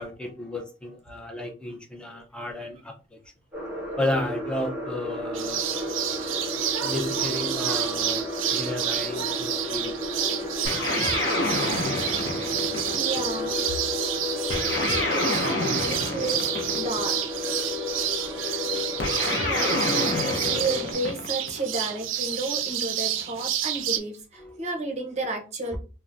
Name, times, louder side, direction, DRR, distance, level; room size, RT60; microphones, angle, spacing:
voice 1, 0.0-3.2 4.0-5.7 6.8-8.2 8.5-9.9 23.4-23.5 24.4-24.7, left 1 dB, 5° left, 0.5 m, -32 dB
sound 1, 3.5-20.9, left 2 dB, 10° right, 1.2 m, -33 dB
sound 2, 5.3-24.0, right 10 dB, 85° right, 0.4 m, -29 dB
sound 3, 10.6-13.3 14.5-17.1 19.0-21.6, left 2 dB, 65° left, 0.6 m, -28 dB
voice 2, 12.8-13.6 14.3-17.2 18.7-19.0 19.4-25.8, right 2 dB, 35° right, 0.7 m, -32 dB
2.6 x 2.1 x 3.3 m
head